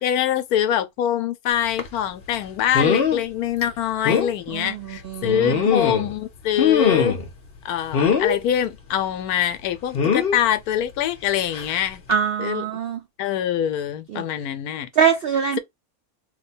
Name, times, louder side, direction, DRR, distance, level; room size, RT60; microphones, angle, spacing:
voice 1, 0.0-7.2 7.6-12.0 12.4-12.6 13.2-14.9, left 10 dB, 80° left, 1.1 m, -24 dB
sound 1, 1.8-1.9 2.7-3.2 3.6-3.7 4.0-4.3 5.2-6.1 6.6-7.3 7.9-8.4 9.9-10.4 11.5-11.7 12.1-12.2, left 7 dB, 50° left, 0.8 m, -21 dB
voice 2, 5.0-5.5 12.1-13.0 14.1-14.2 15.0-15.6, right 7 dB, 85° right, 0.5 m, -22 dB
2.8 x 2.2 x 4.0 m
omnidirectional pair, 1.6 m